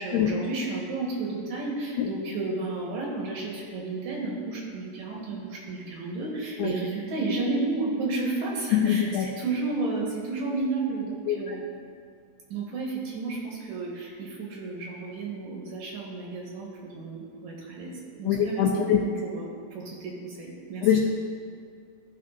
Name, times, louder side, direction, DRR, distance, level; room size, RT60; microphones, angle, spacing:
voice 1, 0.0-11.7 12.5-20.9, right 3 dB, 70° right, -3 dB, 2.5 m, -32 dB
voice 2, 8.7-9.3 11.3-11.6 18.2-19.0 20.8-21.1, left 9 dB, 80° left, 0 dB, 1.5 m, -23 dB
15.5 x 5.4 x 2.6 m, 2.2 s
omnidirectional pair, 3.5 m